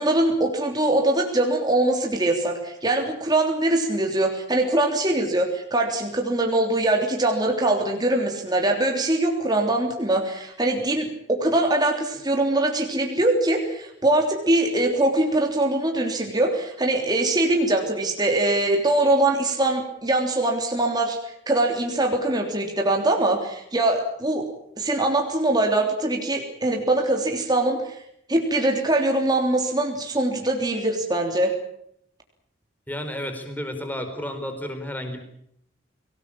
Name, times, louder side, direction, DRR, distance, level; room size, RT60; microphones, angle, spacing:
voice 1, 0.0-21.2 21.5-24.4 24.8-28.0 28.3-31.5, right 2 dB, 20° right, 2 dB, 3.4 m, -22 dB
voice 2, 32.9-35.2, left 1 dB, 10° left, 6 dB, 4.3 m, -32 dB
25.0 x 18.5 x 8.7 m, 0.71 s
head